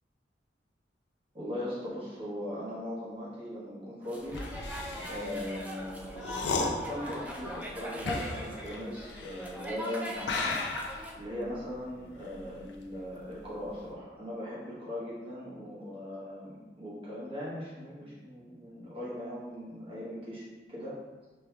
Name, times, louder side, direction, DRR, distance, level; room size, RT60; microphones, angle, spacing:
voice 1, 1.3-4.4 5.1-10.6 11.1-20.9, left 1 dB, 30° right, -8 dB, 1.2 m, -39 dB
sound 1, 4.0-11.1, equal, 10° right, 0.3 m, -41 dB
sound 2, 4.2-9.8 10.2-13.1 13.4-13.8, left 3 dB, 80° left, 0.5 m, -36 dB
5.5 x 3.1 x 2.3 m, 1.3 s
head